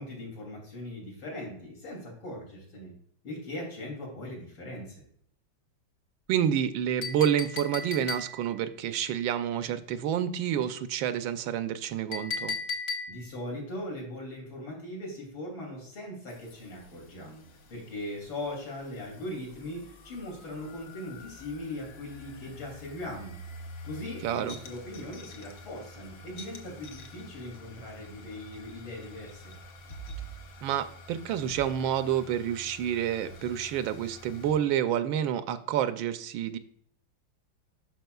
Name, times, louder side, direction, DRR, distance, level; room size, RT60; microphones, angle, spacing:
voice 1, 0.0-2.9 3.2-5.0 13.1-17.4 17.7-23.4 23.8-29.5, left 1 dB, 85° left, -1 dB, 3.7 m, -40 dB
voice 2, 6.3-12.6 24.2-24.6 30.6-36.6, right 9 dB, 85° right, 11 dB, 1.4 m, -29 dB
Chink clink, 7.0-8.6 12.1-13.4, left 4 dB, 45° left, 1.2 m, -35 dB
sound 1, 16.3-34.5, equal, 65° left, 1.6 m, -48 dB
12.0 x 4.9 x 2.3 m, 0.63 s
omnidirectional pair, 2.1 m